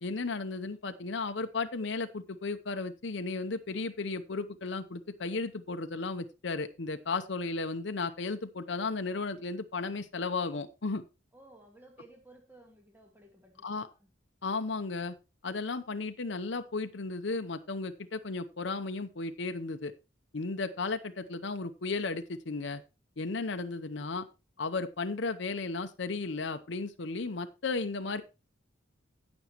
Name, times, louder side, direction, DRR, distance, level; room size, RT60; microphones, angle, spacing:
voice 1, 0.0-11.0 13.6-13.9 14.4-15.2 15.4-19.9 20.3-22.8 23.2-24.3 24.6-28.2, left 3 dB, 60° left, 0.7 m, -34 dB
voice 2, 11.3-14.1, right 1 dB, 10° right, 2.0 m, -56 dB
16.5 x 6.2 x 3.0 m
head